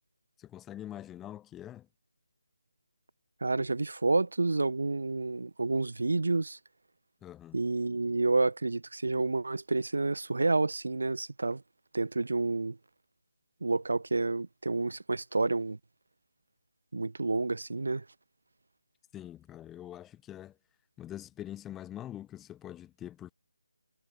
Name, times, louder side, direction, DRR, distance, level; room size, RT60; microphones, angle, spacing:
voice 1, 0.4-1.9 7.2-7.6 19.1-20.5 21.0-23.3, left 12 dB, 5° left, 7.6 m, -44 dB
voice 2, 3.4-6.6 7.5-11.6 11.9-12.8 13.6-15.8 16.9-18.0, right 3 dB, 75° right, 5.5 m, -29 dB
figure-of-eight pair, 175°, 0 cm